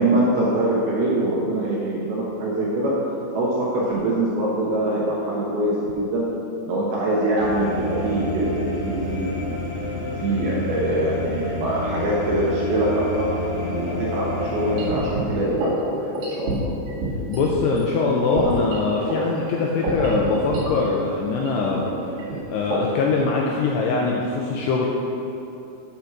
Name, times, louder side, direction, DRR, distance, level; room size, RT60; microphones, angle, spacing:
voice 1, 0.0-2.9 3.3-6.3 6.7-9.7 10.2-13.3 13.7-16.7, right 1 dB, 75° right, -5 dB, 2.4 m, -23 dB
sound 1, 7.4-15.0, left 2 dB, 50° left, 1.6 m, -29 dB
sound 2, 14.8-17.5 17.8-17.9 18.3-20.6 20.9-21.1 21.4-23.1, right 1 dB, 50° right, 2.7 m, -28 dB
voice 2, 17.3-21.9 22.3-24.9, left 4 dB, 90° left, -1 dB, 2.4 m, -22 dB
8.4 x 5.1 x 6.0 m, 2.9 s
omnidirectional pair, 5.5 m